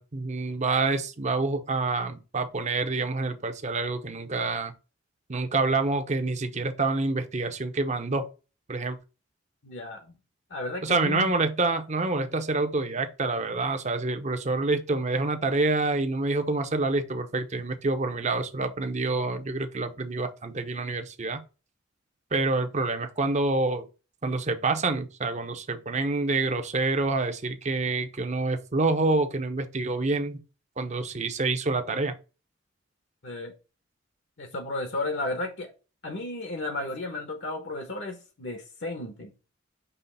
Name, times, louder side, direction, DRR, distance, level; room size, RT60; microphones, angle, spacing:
voice 1, 0.0-4.7 5.3-8.3 8.7-9.0 10.8-21.4 22.3-23.9 24.2-30.4 30.8-32.1, right 3 dB, 40° right, 0.8 m, -27 dB
voice 2, 9.6-10.2 10.5-11.3 33.2-33.5 34.4-35.7 36.0-39.3, left 2 dB, 70° left, 1.2 m, -33 dB
5.6 x 3.1 x 5.6 m
head